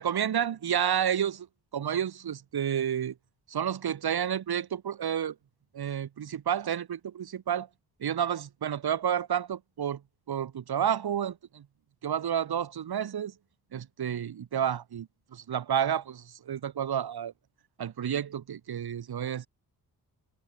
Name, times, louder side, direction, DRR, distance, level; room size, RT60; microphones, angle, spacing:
voice 1, 0.0-1.5 1.7-3.1 3.5-5.3 5.7-7.7 8.0-10.0 10.3-11.6 12.0-13.3 13.7-17.3 17.8-19.5, right 9 dB, 75° right, 6.4 m, -30 dB
wide cardioid pair, 145°, 38 cm